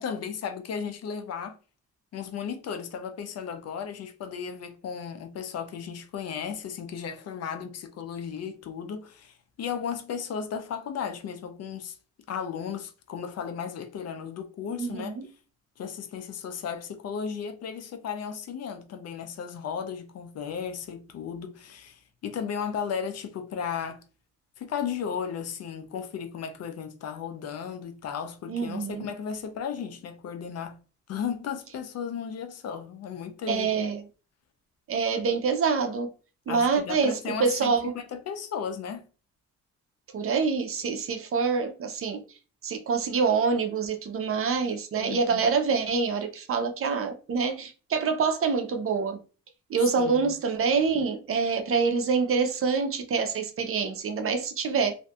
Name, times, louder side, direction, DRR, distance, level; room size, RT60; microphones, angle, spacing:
voice 1, 0.0-1.6 2.1-12.0 12.3-15.2 15.8-24.0 24.6-30.8 31.1-33.7 36.5-39.1 45.0-45.7 50.0-50.3, left 7 dB, 55° left, 0.5 m, -35 dB
voice 2, 14.7-15.3 28.5-29.1 33.5-34.0 34.9-36.1 36.5-37.9 40.1-42.2 42.6-49.2 49.7-54.9, right 5 dB, 45° right, 0.6 m, -26 dB
2.6 x 2.4 x 2.3 m
cardioid pair, 90°, 30 cm